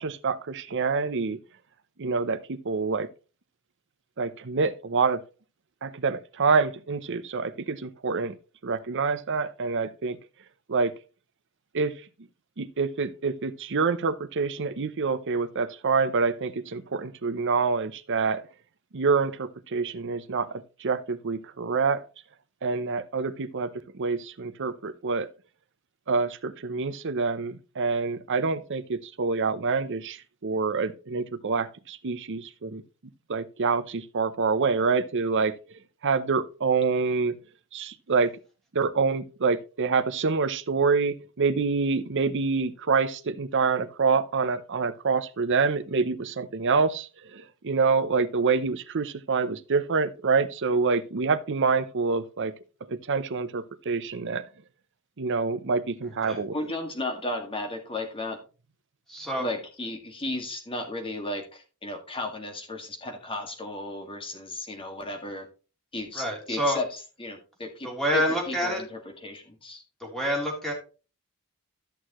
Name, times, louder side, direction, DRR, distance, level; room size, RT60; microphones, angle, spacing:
voice 1, 0.0-1.4 2.0-3.1 4.2-5.2 5.8-8.4 8.6-10.2 10.7-11.0 11.7-12.0 12.6-18.5 18.9-22.0 22.6-25.3 26.1-32.8 33.3-35.6 36.0-37.4 37.7-38.4 38.7-52.5 52.8-54.4 55.2-56.6, right 4 dB, 55° right, 0.7 m, -26 dB
voice 2, 56.5-58.4 59.4-65.5 65.9-66.9 67.2-68.2 68.5-69.8, left 2 dB, 25° left, 1.9 m, -34 dB
voice 3, 59.1-59.5 66.1-66.8 67.8-68.8 70.0-70.7, equal, ahead, 3.2 m, -27 dB
13.0 x 6.5 x 3.0 m
head